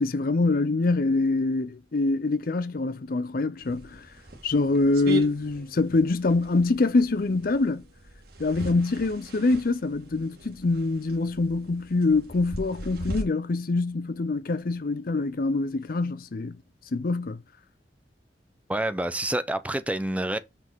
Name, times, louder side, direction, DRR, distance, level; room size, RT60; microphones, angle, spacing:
voice 1, 0.0-4.1 4.4-7.8 8.4-16.6 16.9-17.4, left 3 dB, 50° left, 0.5 m, -25 dB
sound 1, 3.6-13.2, right 2 dB, 60° right, 2.0 m, -40 dB
voice 2, 18.7-20.4, right 1 dB, 10° right, 0.6 m, -28 dB
5.9 x 5.2 x 4.6 m
head